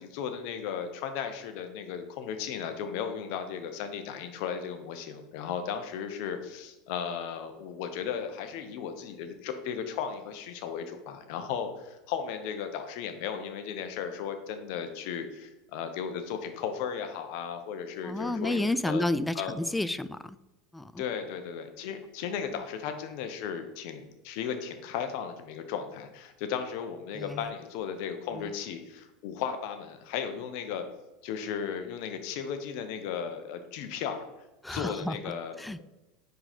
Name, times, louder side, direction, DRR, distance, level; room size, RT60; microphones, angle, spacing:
voice 1, 0.0-19.1 19.3-19.5 21.0-30.8 31.2-34.2 34.7-35.6, left 7 dB, 60° left, 7 dB, 0.8 m, -35 dB
voice 2, 18.0-20.4 20.7-21.0 22.5-22.6 27.1-27.5 28.3-28.5 34.6-35.2 35.6-35.8, left 1 dB, 5° left, 14 dB, 0.3 m, -31 dB
4.8 x 3.8 x 5.0 m, 1.0 s
hypercardioid pair, 90°, 0 cm